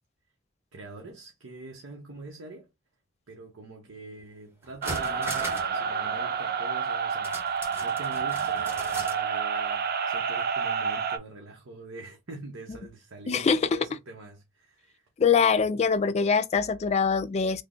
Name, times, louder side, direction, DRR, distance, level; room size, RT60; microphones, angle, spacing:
voice 1, 0.7-2.7 3.3-15.1, right 2 dB, 75° right, 0.8 m, -44 dB
sound 1, 4.2-4.3 4.6-5.8 6.0-6.1 7.2-9.2 9.5-9.6, right 1 dB, 10° right, 0.8 m, -39 dB
sound 2, 4.8-11.2, right 6 dB, 50° right, 0.5 m, -29 dB
voice 2, 13.3-13.6 15.2-17.6, left 5 dB, 35° left, 0.3 m, -23 dB
3.3 x 2.0 x 3.7 m
head